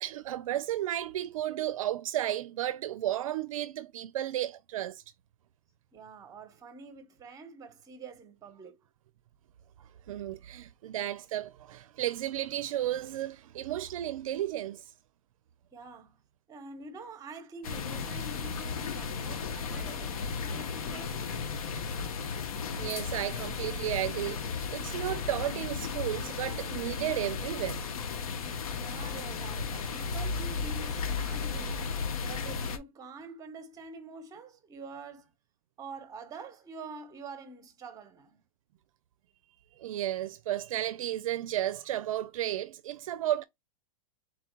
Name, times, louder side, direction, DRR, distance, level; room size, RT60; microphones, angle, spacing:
voice 1, 0.0-5.0 10.1-14.9 22.8-27.8 39.8-43.4, right 13 dB, 70° right, 0.4 m, -33 dB
voice 2, 5.9-8.8 15.7-16.2 16.5-21.2 28.8-35.3 35.8-38.4, right 4 dB, 20° right, 1.0 m, -46 dB
sound 1, 17.6-32.8, left 5 dB, 75° left, 1.0 m, -35 dB
4.0 x 2.3 x 4.4 m
hypercardioid pair, 135°, 18 cm